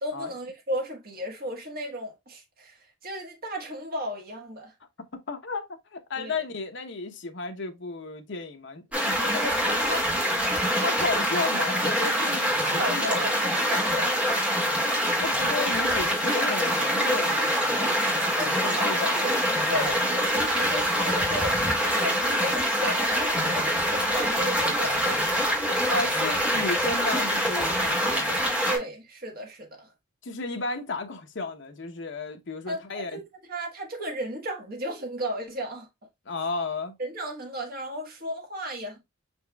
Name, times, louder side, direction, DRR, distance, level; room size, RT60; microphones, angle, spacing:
voice 1, 0.0-4.7 6.2-6.5 9.3-10.9 12.6-14.4 18.3-25.9 28.7-29.9 32.7-35.9 37.0-39.0, equal, 50° right, 1.5 m, -35 dB
voice 2, 5.3-9.4 9.7-10.0 10.8-13.1 15.2-18.0 18.3-19.3 25.9-28.7 30.2-33.2 36.3-36.9, left 3 dB, 65° left, 0.8 m, -33 dB
sound 1, 8.9-28.8, equal, 5° right, 1.9 m, -25 dB
5.4 x 4.3 x 2.3 m
head